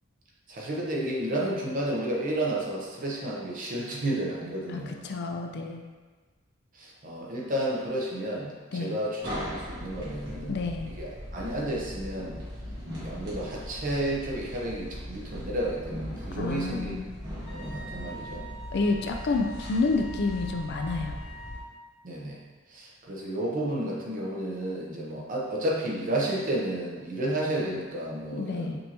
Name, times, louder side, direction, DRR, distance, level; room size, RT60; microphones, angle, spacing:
voice 1, 0.5-5.0 6.7-10.5 11.0-12.4 12.9-17.0 17.4-18.5 22.0-22.4 22.7-28.8, right 1 dB, 40° right, -3 dB, 0.7 m, -31 dB
voice 2, 4.7-5.9 8.7-9.0 10.5-10.9 16.4-17.0 18.7-21.2 28.4-28.8, left 3 dB, 55° left, 3 dB, 0.4 m, -29 dB
sound 1, 9.2-21.6, equal, 60° right, 1.4 m, -39 dB
Wind instrument woodwind instrument, 17.5-21.7, right 1 dB, 30° left, 0.9 m, -45 dB
5.2 x 2.7 x 2.9 m, 1.4 s
head